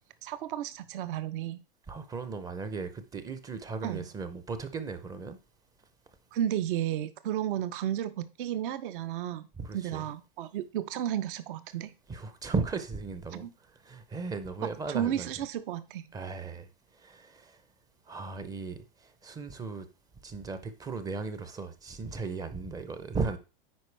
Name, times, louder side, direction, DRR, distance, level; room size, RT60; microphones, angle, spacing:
voice 1, 0.2-1.6 3.8-4.1 6.3-9.5 9.7-11.9 13.3-13.5 14.6-16.1, right 11 dB, 60° right, 0.7 m, -33 dB
voice 2, 1.9-5.4 9.6-10.0 12.1-13.5 13.9-15.3 16.1-16.7 17.0-17.5 18.1-18.8 19.2-19.9 20.2-23.4, right 4 dB, 10° right, 0.5 m, -36 dB
9.4 x 4.6 x 3.3 m
supercardioid pair, 145°, 29 cm